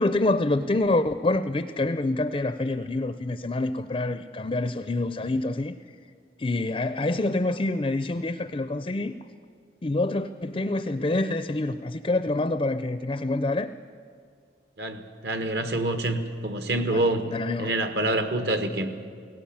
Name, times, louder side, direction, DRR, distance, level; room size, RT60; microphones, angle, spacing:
voice 1, 0.0-5.7 6.4-9.2 9.8-13.7 16.9-17.8, left 2 dB, 30° left, 11 dB, 0.4 m, -26 dB
voice 2, 14.8-17.2 17.6-18.9, right 2 dB, 65° right, 8 dB, 1.4 m, -26 dB
17.5 x 17.5 x 8.7 m, 2.2 s
head